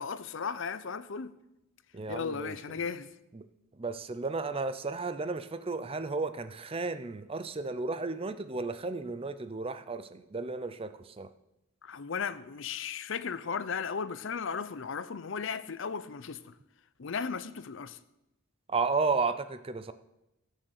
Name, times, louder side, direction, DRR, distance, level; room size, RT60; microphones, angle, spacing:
voice 1, 0.0-1.3 2.1-3.1 11.8-16.5 17.0-18.0, left 6 dB, 60° left, 0.6 m, -36 dB
voice 2, 1.9-2.5 3.3-3.4 3.8-11.3 18.7-19.9, right 4 dB, 25° right, 0.5 m, -33 dB
13.5 x 6.4 x 6.5 m
head